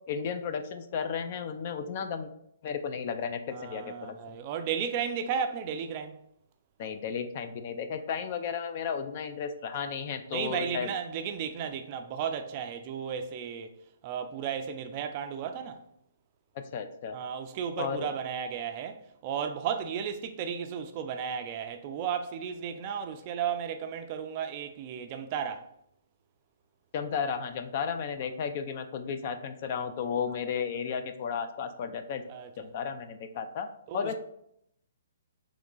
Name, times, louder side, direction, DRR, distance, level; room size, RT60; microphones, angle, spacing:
voice 1, 0.1-2.3 2.6-4.4 6.8-10.9 16.5-17.2 17.8-18.1 26.9-32.2 32.6-33.7 33.9-34.1, left 6 dB, 40° left, 0.4 m, -34 dB
voice 2, 3.5-6.2 10.3-13.7 14.0-15.8 17.1-25.7 32.3-32.5 33.9-34.1, right 7 dB, 35° right, 0.4 m, -34 dB
3.6 x 3.1 x 3.8 m
hypercardioid pair, 155°, 0 cm